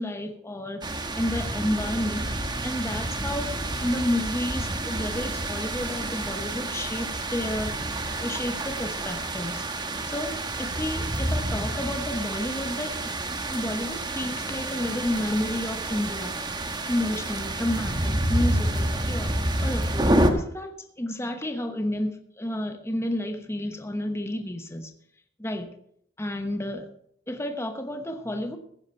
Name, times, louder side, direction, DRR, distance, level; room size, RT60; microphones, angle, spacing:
voice 1, 0.0-2.3 2.6-7.7 8.2-9.7 10.1-13.2 13.5-16.4 16.9-24.9 25.4-25.7 26.2-26.9 27.3-28.6, left 1 dB, 15° left, 6 dB, 1.1 m, -31 dB
sound 1, 0.8-20.3, right 1 dB, 25° right, 1.2 m, -29 dB
15.5 x 10.5 x 4.4 m, 0.68 s
head